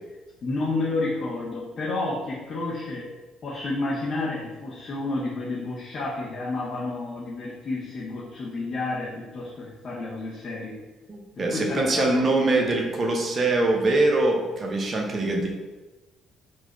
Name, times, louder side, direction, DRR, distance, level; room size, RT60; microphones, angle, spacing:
voice 1, 0.4-3.1 3.4-10.8 11.4-12.2, left 2 dB, 45° left, -6 dB, 0.6 m, -30 dB
voice 2, 11.1-15.5, right 2 dB, 35° right, 1 dB, 0.7 m, -23 dB
4.1 x 2.3 x 2.9 m, 1.2 s
figure-of-eight pair, 45°, 0 cm